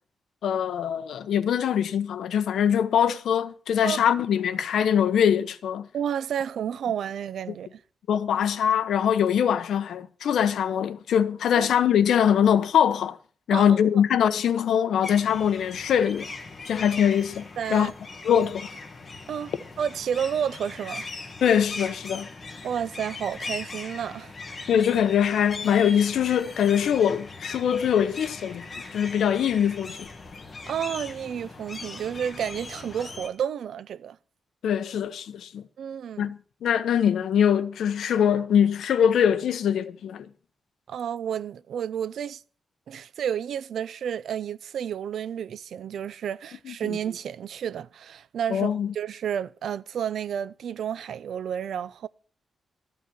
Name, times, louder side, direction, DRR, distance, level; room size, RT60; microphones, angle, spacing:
voice 1, 0.4-5.9 8.1-13.2 13.5-16.3 16.7-17.4 17.7-17.9 18.2-18.7 21.4-22.3 24.7-28.7 28.9-30.1 34.6-35.6 36.2-40.3 46.6-47.0 48.5-48.9, left 8 dB, 80° left, 0.8 m, -23 dB
voice 2, 5.9-7.8 11.6-11.7 13.5-14.0 17.6-17.9 19.3-21.1 22.6-24.3 30.6-34.2 35.8-36.3 40.9-42.4 42.9-52.1, right 8 dB, 70° right, 0.5 m, -31 dB
sound 1, 15.0-33.3, left 3 dB, 30° left, 1.6 m, -40 dB
13.5 x 5.7 x 7.7 m
wide cardioid pair, 165°, 0 cm